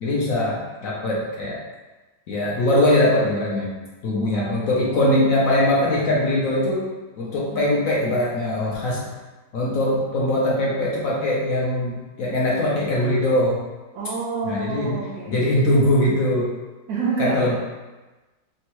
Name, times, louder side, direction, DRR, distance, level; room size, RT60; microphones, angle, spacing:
voice 1, 0.0-1.6 2.3-3.7 4.0-6.9 7.2-9.1 9.5-13.6 14.4-15.0 15.3-16.5 17.2-17.5, left 1 dB, 65° left, -5 dB, 0.9 m, -21 dB
voice 2, 4.3-5.3 7.4-7.7 13.9-15.5 16.9-17.5, right 4 dB, 70° right, -4 dB, 0.9 m, -29 dB
3.5 x 2.1 x 2.9 m, 1.2 s
omnidirectional pair, 1.8 m